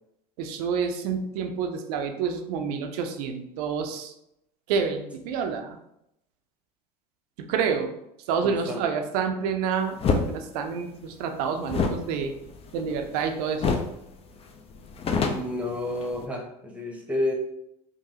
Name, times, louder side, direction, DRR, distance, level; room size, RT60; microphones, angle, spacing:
voice 1, 0.4-4.1 4.7-5.8 7.4-7.9 8.3-12.4 12.7-13.7, right 6 dB, 65° right, 5 dB, 0.6 m, -28 dB
voice 2, 8.4-8.8 15.3-17.3, left 1 dB, 5° right, 1 dB, 0.9 m, -30 dB
sound 1, 10.0-10.3 11.7-13.2 13.6-14.0 14.3-14.4 14.7-16.3, left 4 dB, 30° left, 0.5 m, -27 dB
3.8 x 2.6 x 2.8 m, 0.80 s
hypercardioid pair, 80°, 21 cm